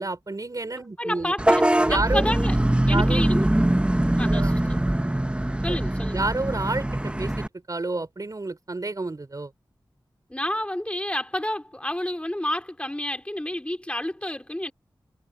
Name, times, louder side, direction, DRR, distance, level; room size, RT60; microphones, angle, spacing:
voice 1, 0.0-1.3 1.9-2.3 2.9-3.3 4.2-4.5 5.7-5.8 6.1-9.5, right 2 dB, 45° right, 4.8 m, -29 dB
voice 2, 1.0-2.6 2.9-3.5 4.2-4.6 5.6-6.2 10.3-14.7, left 1 dB, 15° left, 3.1 m, -29 dB
Vehicle horn car horn honking / Bus, 1.4-7.5, right 1 dB, 15° right, 0.9 m, -22 dB
wide cardioid pair, 70°, 8 cm